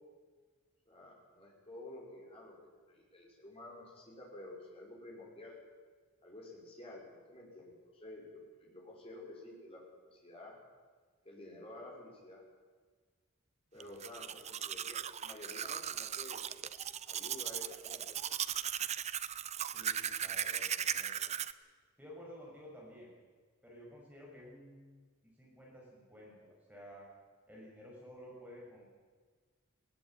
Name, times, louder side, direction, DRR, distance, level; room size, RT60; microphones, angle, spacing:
voice 1, 0.9-2.6 2.9-5.6 6.2-10.5 11.2-12.4 13.7-16.4 17.0-18.2, left 1 dB, 25° left, -3 dB, 5.9 m, -51 dB
Domestic sounds home sounds, 13.8-21.5, right 9 dB, 30° right, 0.5 m, -38 dB
voice 2, 19.7-21.3 22.0-23.1 23.6-25.0 25.4-27.1 27.5-28.9, equal, 5° right, -4 dB, 6.3 m, -53 dB
20.0 x 18.0 x 9.2 m, 1.5 s
head